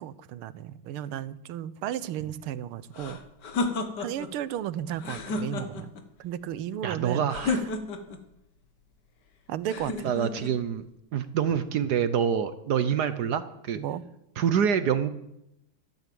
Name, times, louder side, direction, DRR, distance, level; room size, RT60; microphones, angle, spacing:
voice 1, 0.0-3.2 4.0-5.9 6.2-7.7 9.5-10.2 13.7-14.0, right 11 dB, 80° right, 16 dB, 1.6 m, -34 dB
sound 1, 2.9-4.3 5.0-6.0 7.3-8.2 9.7-10.5, left 3 dB, 55° left, 1.8 m, -31 dB
voice 2, 6.8-7.6 10.0-10.9 11.1-13.8 14.4-15.1, right 8 dB, 65° right, 12 dB, 1.1 m, -26 dB
13.5 x 12.0 x 7.7 m, 0.85 s
omnidirectional pair, 2.4 m